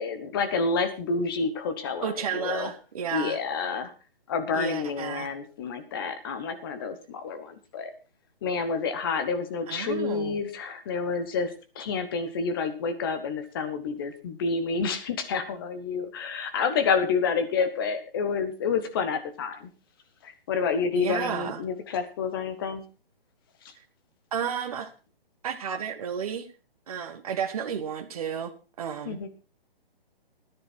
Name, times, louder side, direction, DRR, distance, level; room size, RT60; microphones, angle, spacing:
voice 1, 0.0-2.7 3.1-3.9 4.3-7.9 8.4-11.5 11.7-19.7 20.2-22.8 29.1-29.3, left 5 dB, 25° left, 9 dB, 1.2 m, -29 dB
voice 2, 2.0-3.4 4.5-5.3 9.7-10.4 20.9-21.6 24.3-24.9 25.4-26.5 26.9-29.2, right 7 dB, 40° right, 6 dB, 1.4 m, -32 dB
14.0 x 10.0 x 4.4 m, 0.33 s
hypercardioid pair, 165°, 30 cm